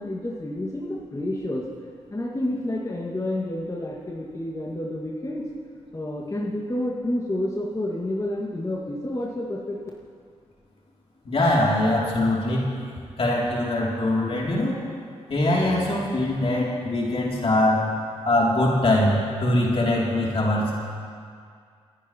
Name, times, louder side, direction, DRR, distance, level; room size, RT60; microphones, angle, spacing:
voice 1, 0.0-1.6 2.1-5.5 5.9-9.8, left 1 dB, 25° left, -4 dB, 2.0 m, -29 dB
voice 2, 11.2-12.7 13.2-14.8 15.3-17.9 18.2-20.7, left 1 dB, 50° left, -3 dB, 3.0 m, -22 dB
28.0 x 9.9 x 3.1 m, 2.2 s
supercardioid pair, 50°, 12 cm